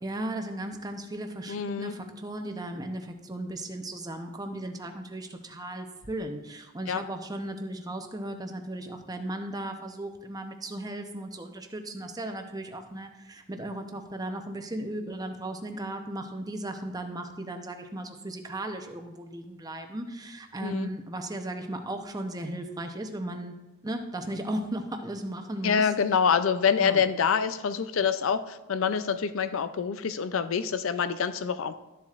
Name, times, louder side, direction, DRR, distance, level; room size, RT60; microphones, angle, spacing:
voice 1, 0.0-23.5 23.8-25.9 26.8-27.0, right 1 dB, 15° right, 5 dB, 0.7 m, -36 dB
voice 2, 1.5-1.9 6.9-7.0 20.6-20.9 25.6-31.7, left 6 dB, 65° left, 12 dB, 0.5 m, -26 dB
12.5 x 7.3 x 2.5 m, 1.1 s
head